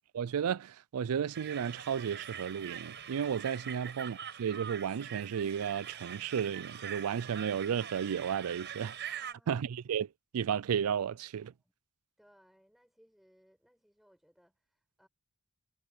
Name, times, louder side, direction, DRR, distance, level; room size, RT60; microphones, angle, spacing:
voice 1, 0.1-9.0 9.5-10.1 10.3-11.5, right 8 dB, 80° right, 0.4 m, -33 dB
sound 1, 1.3-9.3, right 8 dB, 55° right, 5.4 m, -44 dB
voice 2, 9.1-9.7 11.4-11.7 12.2-15.1, equal, ahead, 7.1 m, -66 dB
head